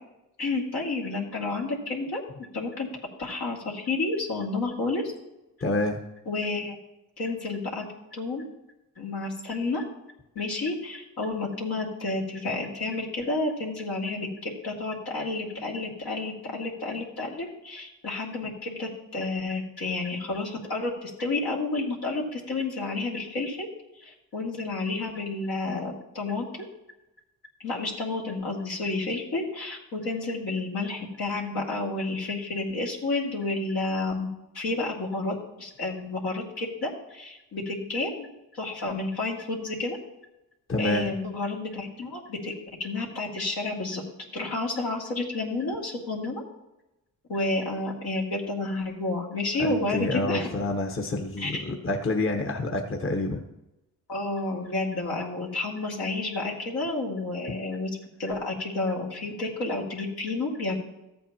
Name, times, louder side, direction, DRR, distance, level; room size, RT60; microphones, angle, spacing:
voice 1, 0.4-2.9 3.2-5.0 6.3-6.8 7.2-7.9 8.1-8.5 9.0-9.8 10.4-23.7 24.0-26.5 27.6-34.3 34.5-38.3 38.5-40.0 40.8-42.5 42.8-44.0 44.3-46.4 47.3-50.6 51.4-51.6 54.1-57.9 58.2-60.7, left 2 dB, 75° left, -2 dB, 2.4 m, -30 dB
voice 2, 5.6-6.0 40.7-41.1 49.6-53.4, left 2 dB, 35° left, 3 dB, 1.2 m, -28 dB
14.0 x 8.3 x 2.9 m, 0.94 s
cardioid pair, 70°, 37 cm